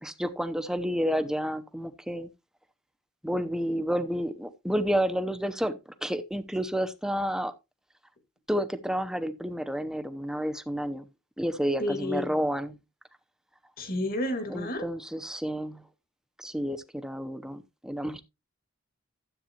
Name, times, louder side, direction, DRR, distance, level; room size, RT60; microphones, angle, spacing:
voice 1, 0.0-2.3 3.2-7.5 8.5-11.0 11.4-12.8 14.5-15.8 16.4-18.2, equal, 5° right, 0.7 m, -30 dB
voice 2, 11.8-12.3 13.8-14.9, left 1 dB, 45° left, 2.0 m, -31 dB
13.0 x 8.0 x 2.9 m
head